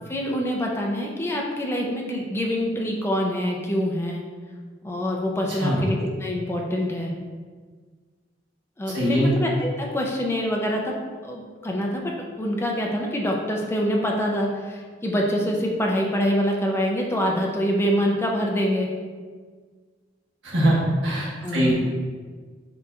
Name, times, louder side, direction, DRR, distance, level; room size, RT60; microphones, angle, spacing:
voice 1, 0.1-4.2 4.8-7.1 8.8-11.0 11.2-12.0 12.4-18.9 21.4-21.7, equal, 15° left, -1 dB, 0.5 m, -25 dB
voice 2, 8.9-9.3 20.4-21.3 21.5-21.7, equal, 75° right, -6 dB, 1.4 m, -21 dB
7.5 x 2.9 x 2.4 m, 1.5 s
head